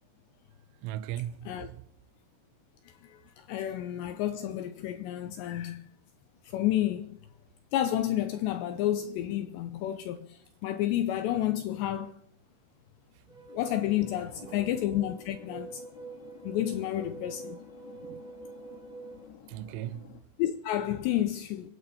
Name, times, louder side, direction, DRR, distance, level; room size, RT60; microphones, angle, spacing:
voice 1, 0.8-1.9 3.6-3.7 13.2-13.3 14.3-14.6 18.1-18.2 19.5-20.2, right 12 dB, 85° right, 3.2 m, -38 dB
voice 2, 3.0-5.9 6.4-7.2 7.7-12.2 13.5-15.8 16.4-17.6 20.4-21.7, left 12 dB, 80° left, 2.5 m, -30 dB
sound 1, 13.3-19.3, right 4 dB, 10° right, 3.3 m, -46 dB
sound 2, 13.6-20.2, left 9 dB, 60° left, 3.2 m, -53 dB
24.5 x 9.7 x 4.2 m
omnidirectional pair, 5.7 m